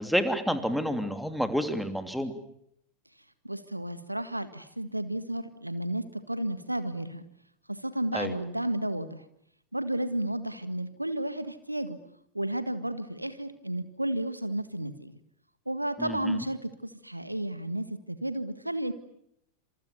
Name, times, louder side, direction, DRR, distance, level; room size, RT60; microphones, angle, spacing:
voice 1, 0.0-2.3 8.1-8.3 16.0-16.4, equal, ahead, 8 dB, 3.0 m, -29 dB
voice 2, 3.4-7.2 7.7-9.2 9.7-12.0 12.3-15.2 15.7-18.9, right 1 dB, 85° right, 12 dB, 1.8 m, -32 dB
28.5 x 27.0 x 7.0 m, 0.74 s
figure-of-eight pair, 90°, 0 cm